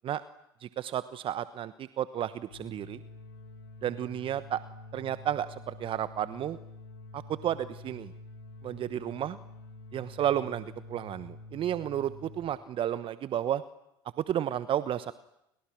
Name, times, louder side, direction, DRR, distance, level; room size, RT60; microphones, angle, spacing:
voice 1, 0.6-3.0 3.8-4.6 4.9-6.6 7.1-8.1 8.6-9.4 9.9-13.6 14.2-15.1, right 11 dB, 45° right, 14 dB, 1.2 m, -32 dB
sound 1, 2.5-12.4, left 2 dB, 80° left, 6.2 m, -48 dB
30.0 x 29.5 x 6.2 m, 0.82 s
hypercardioid pair, 70°, 13 cm